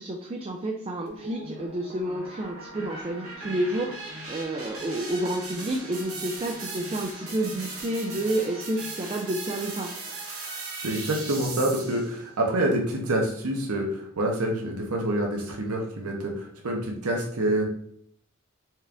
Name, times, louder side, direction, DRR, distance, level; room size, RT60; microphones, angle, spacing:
voice 1, 0.0-10.0, right 1 dB, 25° right, 2 dB, 0.3 m, -30 dB
sound 1, 1.1-12.2, right 3 dB, 65° right, 1.3 m, -38 dB
voice 2, 10.8-17.6, right 1 dB, 80° right, 1 dB, 0.8 m, -27 dB
4.3 x 2.4 x 3.4 m, 0.65 s
head